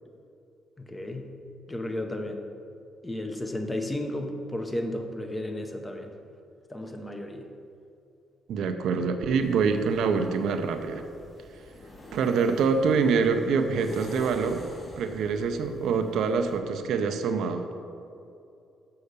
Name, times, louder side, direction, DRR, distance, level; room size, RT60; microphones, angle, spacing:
voice 1, 0.8-1.3 1.7-2.4 3.0-6.1 6.7-7.5, left 1 dB, 15° left, 4 dB, 0.9 m, -33 dB
voice 2, 8.5-11.0 12.1-14.6 15.0-17.7, right 5 dB, 75° right, 7 dB, 0.6 m, -25 dB
sound 1, 9.4-16.6, left 1 dB, 30° left, 1.9 m, -46 dB
6.8 x 5.7 x 6.6 m, 2.6 s
cardioid pair, 90°, 0 cm